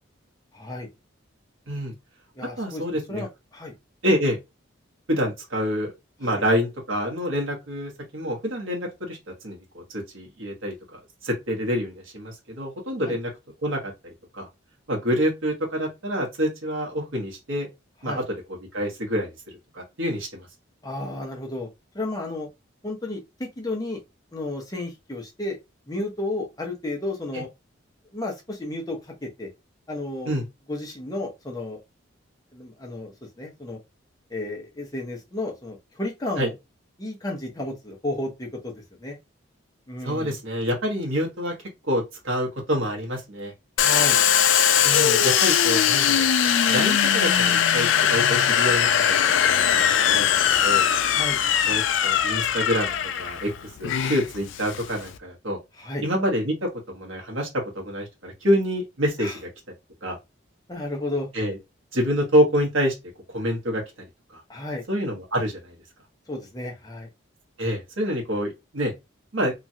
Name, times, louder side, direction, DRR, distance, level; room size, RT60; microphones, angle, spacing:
voice 1, 0.5-0.9 2.4-2.8 3.1-3.7 6.2-6.4 13.0-13.2 18.0-18.2 20.8-21.7 21.9-22.5 22.8-24.0 24.3-25.6 25.9-27.5 28.1-29.5 29.9-30.4 30.7-31.8 32.5-33.8 34.3-36.5 37.0-38.7 39.0-39.2 39.9-40.3 43.8-44.2 51.1-51.4 55.8-56.0 59.2-59.4 60.7-61.3 64.5-64.8 66.3-67.1, left 2 dB, 20° left, 0.7 m, -32 dB
voice 2, 2.6-3.2 4.0-4.4 5.1-5.9 6.2-9.2 9.4-13.3 13.6-13.9 14.4-14.5 14.9-17.7 18.0-18.2 18.7-19.3 19.7-20.5 27.3-27.4 30.2-30.4 36.4-36.5 40.0-41.5 41.8-43.5 44.8-46.3 46.7-50.4 50.6-50.8 51.6-53.5 53.8-55.6 56.0-56.7 56.9-59.5 60.0-60.2 61.3-61.6 61.9-62.9 63.3-63.8 64.3-64.4 64.9-65.7 67.6-68.9 69.3-69.5, equal, 85° right, 1.1 m, -27 dB
Domestic sounds home sounds, 43.8-55.2, left 9 dB, 65° left, 0.3 m, -21 dB
3.0 x 2.4 x 2.7 m
head